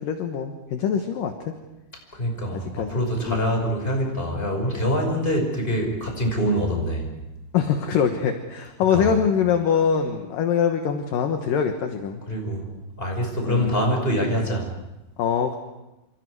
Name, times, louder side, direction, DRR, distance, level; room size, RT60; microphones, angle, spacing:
voice 1, 0.0-1.5 2.5-3.7 7.5-12.2 13.5-13.8 15.2-15.6, left 7 dB, 65° left, 5 dB, 2.4 m, -24 dB
voice 2, 2.1-7.1 8.9-9.1 12.3-12.6 13.0-14.7, equal, 10° left, 2 dB, 4.9 m, -25 dB
28.0 x 27.5 x 4.8 m, 0.99 s
omnidirectional pair, 5.3 m